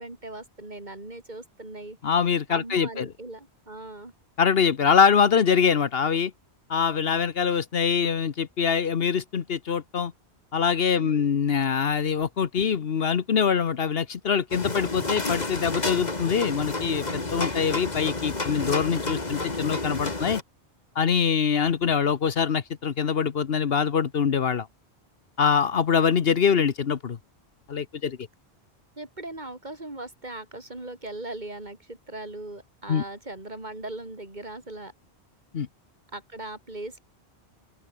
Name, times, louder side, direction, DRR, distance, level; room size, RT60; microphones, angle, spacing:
voice 1, 0.0-2.0 2.5-4.1 10.9-11.4 29.0-34.9 36.1-37.0, right 2 dB, 45° right, 3.6 m, -39 dB
voice 2, 2.0-3.1 4.4-6.3 6.7-10.1 10.5-20.4 20.9-24.7 25.4-27.2 27.7-28.2 32.9-33.0 35.5-35.7, left 6 dB, 65° left, 1.2 m, -24 dB
sound 1, 14.5-20.4, left 2 dB, 40° left, 2.5 m, -30 dB
open air
omnidirectional pair, 1.1 m